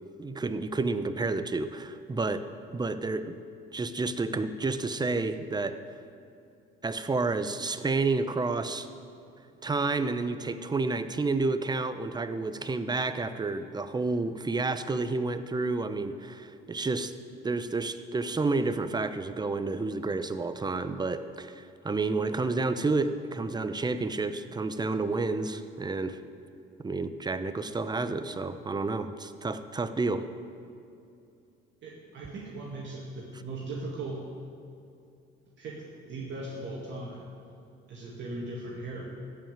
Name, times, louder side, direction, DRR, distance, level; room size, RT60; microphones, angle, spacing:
voice 1, 0.2-3.4 3.7-5.8 6.8-8.9 9.6-17.1 17.4-26.2 26.8-30.3, right 3 dB, 20° right, 11 dB, 0.8 m, -30 dB
voice 2, 31.8-34.2 35.6-37.2 37.9-39.1, right 2 dB, 60° right, -4 dB, 2.3 m, -38 dB
15.0 x 5.6 x 9.0 m, 2.6 s
supercardioid pair, 85°, 21 cm